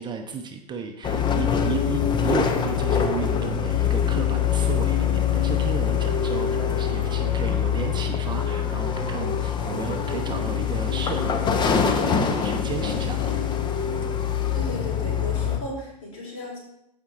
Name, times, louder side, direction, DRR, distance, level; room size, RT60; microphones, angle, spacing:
voice 1, 0.0-13.4, right 6 dB, 20° right, 5 dB, 0.8 m, -34 dB
sound 1, 1.0-15.6, left 8 dB, 20° left, 0.9 m, -24 dB
voice 2, 14.5-16.6, left 1 dB, 50° left, -2 dB, 4.3 m, -35 dB
15.0 x 5.2 x 3.9 m, 0.82 s
figure-of-eight pair, 90°, 21 cm